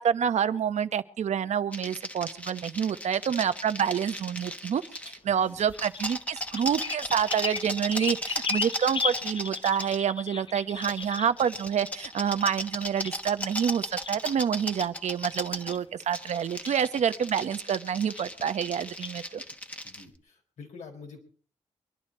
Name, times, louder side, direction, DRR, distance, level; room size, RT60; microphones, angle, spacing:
voice 1, 0.0-19.4, right 8 dB, 80° right, 11 dB, 0.9 m, -28 dB
sound 1, 1.7-5.2 5.6-10.0 10.8-20.0, left 1 dB, 10° left, 1.2 m, -36 dB
sound 2, 3.8-5.1 5.7-6.2 6.5-11.4 12.7-13.1 13.4-13.5 14.0-14.5 14.8-14.9 15.5-15.8 16.6-17.0 17.3-17.5 18.1-18.4 19.0-19.1, left 5 dB, 45° left, 0.7 m, -36 dB
voice 2, 5.2-5.6 19.8-21.2, left 4 dB, 90° left, 2 dB, 4.4 m, -47 dB
24.5 x 11.0 x 4.2 m, 0.43 s
cardioid pair, 85°, 12 cm